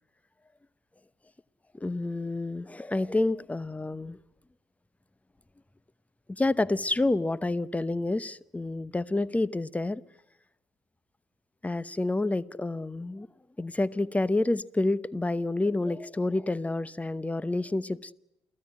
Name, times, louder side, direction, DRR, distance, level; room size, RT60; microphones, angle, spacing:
voice 1, 1.7-4.2 6.3-10.0 11.6-13.3 13.6-18.1, left 2 dB, 10° left, 0.9 m, -28 dB
28.5 x 17.5 x 9.3 m
hypercardioid pair, 50°, 13 cm